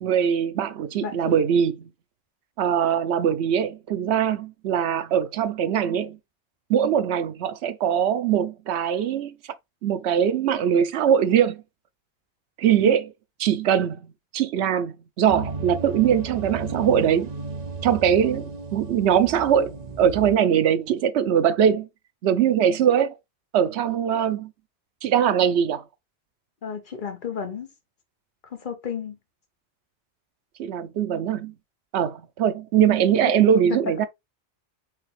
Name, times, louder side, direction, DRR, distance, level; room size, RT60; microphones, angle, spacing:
voice 1, 0.0-1.9 2.6-6.2 6.7-9.3 9.8-11.6 12.6-13.0 13.4-17.3 17.8-19.7 20.0-21.9 22.2-23.1 23.5-24.5 25.0-25.8 30.6-31.5 31.9-34.1, right 9 dB, 80° right, 0.9 m, -22 dB
sound 1, 15.3-20.4, right 3 dB, 45° right, 0.7 m, -34 dB
voice 2, 26.6-27.7 28.5-29.2 33.7-33.8, left 7 dB, 50° left, 1.1 m, -32 dB
4.8 x 3.3 x 3.2 m
omnidirectional pair, 1.1 m